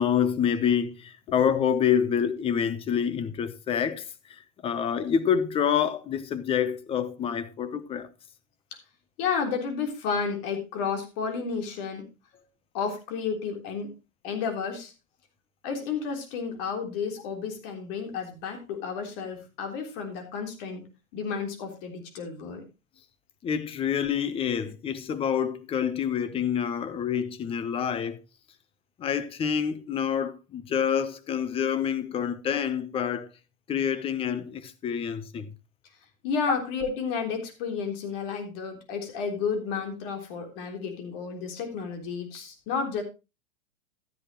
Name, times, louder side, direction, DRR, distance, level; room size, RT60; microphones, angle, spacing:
voice 1, 0.0-8.1 23.4-28.2 29.0-33.3 33.7-35.5, left 8 dB, 15° left, 0.7 m, -27 dB
voice 2, 9.2-12.1 12.7-13.9 14.2-14.9 15.6-20.9 21.1-22.6 36.2-43.0, left 5 dB, 45° left, 3.5 m, -31 dB
13.0 x 9.9 x 3.0 m
hypercardioid pair, 140°, 40 cm